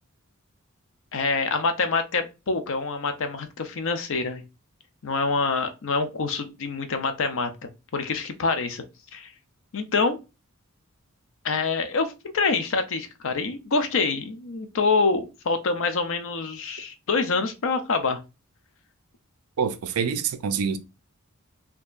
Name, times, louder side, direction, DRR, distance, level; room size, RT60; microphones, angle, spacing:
voice 1, 1.1-4.4 5.0-8.8 9.1-9.3 9.7-10.2 11.4-18.2, left 4 dB, 65° left, 0.6 m, -26 dB
voice 2, 19.6-20.8, right 6 dB, 75° right, 0.5 m, -26 dB
4.4 x 2.8 x 2.4 m
head